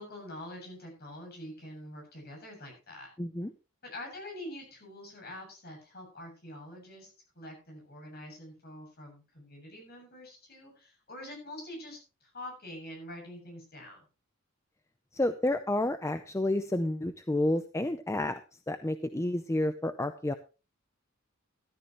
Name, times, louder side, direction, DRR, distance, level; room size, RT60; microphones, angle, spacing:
voice 1, 0.0-3.1 3.8-14.1, left 1 dB, 45° left, 2 dB, 7.6 m, -45 dB
voice 2, 3.2-3.5 15.1-18.4 18.7-20.3, left 1 dB, 15° left, 10 dB, 0.6 m, -30 dB
13.5 x 13.0 x 3.1 m, 0.31 s
head